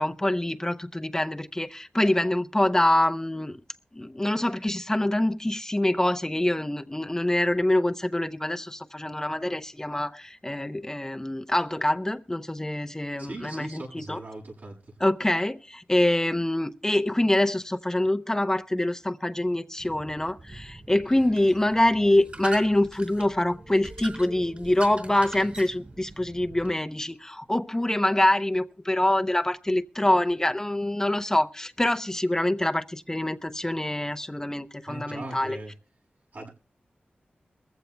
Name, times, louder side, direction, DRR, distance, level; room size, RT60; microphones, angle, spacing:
voice 1, 0.0-3.6 3.9-14.2 15.0-35.6, left 1 dB, 15° left, 0.6 m, -25 dB
voice 2, 13.2-14.8 34.9-35.7 36.3-36.5, right 2 dB, 65° right, 6.7 m, -39 dB
sound 1, 19.8-26.7, right 2 dB, 40° right, 3.9 m, -42 dB
22.0 x 15.0 x 2.2 m
wide cardioid pair, 75°, 3 cm